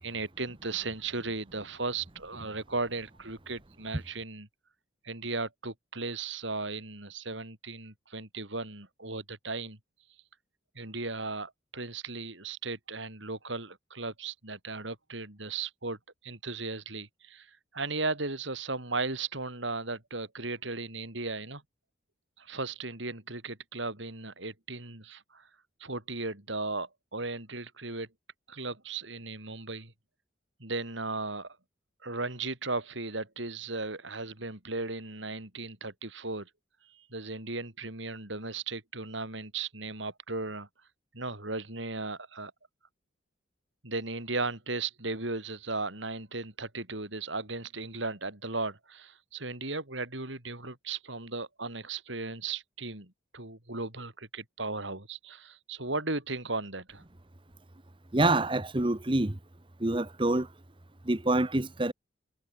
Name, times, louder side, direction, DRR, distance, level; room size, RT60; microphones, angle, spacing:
voice 1, 0.0-4.5 5.0-9.8 10.8-16.0 16.2-17.5 17.7-21.6 22.4-25.4 25.8-28.1 28.5-29.9 30.6-31.6 32.0-36.5 37.1-40.7 41.1-42.5 43.8-57.0, right 3 dB, 75° right, 5.4 m, -36 dB
voice 2, 58.1-59.4 59.8-60.5 61.0-61.9, right 2 dB, 25° right, 1.0 m, -26 dB
head